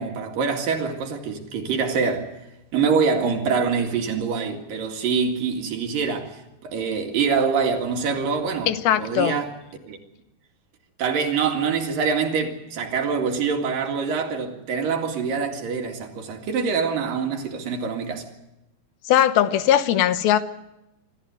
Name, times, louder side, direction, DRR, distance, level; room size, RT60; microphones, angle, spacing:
voice 1, 0.0-2.3 2.7-9.6 9.8-10.0 11.0-18.3, right 5 dB, 70° right, 3.7 m, -25 dB
voice 2, 8.7-9.4 19.0-20.4, left 11 dB, 85° left, 2.9 m, -19 dB
26.0 x 13.5 x 9.4 m
omnidirectional pair, 4.2 m